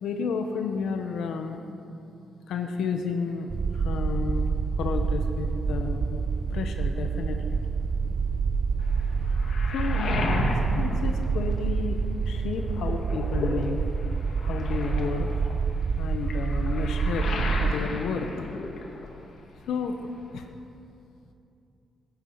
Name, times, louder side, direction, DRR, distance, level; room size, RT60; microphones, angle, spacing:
voice 1, 0.0-1.6 2.5-4.5 4.8-6.2 6.5-7.6 9.2-9.4 9.7-13.8 14.4-15.3 16.0-17.3 17.6-18.3 19.7-20.0 20.3-20.4, left 5 dB, 85° left, 5 dB, 1.0 m, -31 dB
sound 1, 3.5-17.7, right 5 dB, 35° right, 0.3 m, -27 dB
Waves surf, 8.8-12.0 12.4-19.3 19.5-20.5, left 3 dB, 60° left, 2.1 m, -34 dB
19.5 x 9.0 x 5.7 m, 2.6 s
cardioid pair, 155°, 0 cm